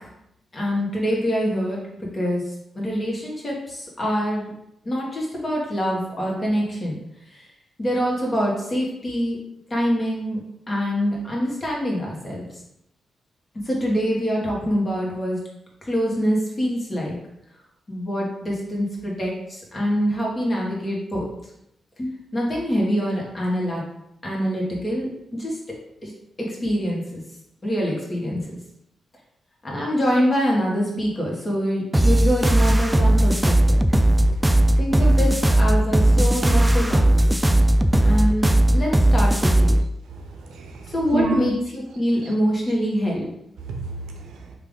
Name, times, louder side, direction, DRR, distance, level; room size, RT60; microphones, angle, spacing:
voice 1, 0.5-1.8 2.1-2.4 2.7-4.4 4.8-6.9 7.8-9.4 9.7-10.4 10.7-12.4 13.7-15.4 15.9-17.1 17.9-21.3 22.0-23.8 24.2-25.5 26.0-26.1 26.4-27.2 27.6-28.4 29.6-33.8 34.8-37.5 38.0-39.7 40.9-43.2, equal, 40° left, -3 dB, 1.4 m, -25 dB
sound 1, 31.9-39.8, right 1 dB, 15° right, 0.3 m, -17 dB
voice 2, 33.9-35.2 36.4-36.6 37.9-38.3 40.2-41.5 42.2-42.3 43.6-44.4, right 2 dB, 80° right, 2 dB, 0.6 m, -30 dB
3.3 x 2.5 x 3.7 m, 0.80 s
hypercardioid pair, 40°, 0 cm